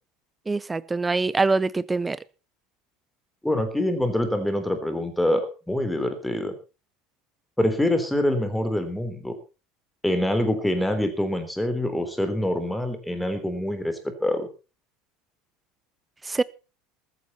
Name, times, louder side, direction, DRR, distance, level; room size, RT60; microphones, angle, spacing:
voice 1, 0.5-2.2 16.2-16.4, right 3 dB, 15° right, 19 dB, 0.7 m, -24 dB
voice 2, 3.4-6.5 7.6-9.4 10.0-14.5, left 1 dB, 5° left, 8 dB, 3.5 m, -25 dB
14.5 x 13.5 x 4.3 m, 0.32 s
figure-of-eight pair, 70°, 0 cm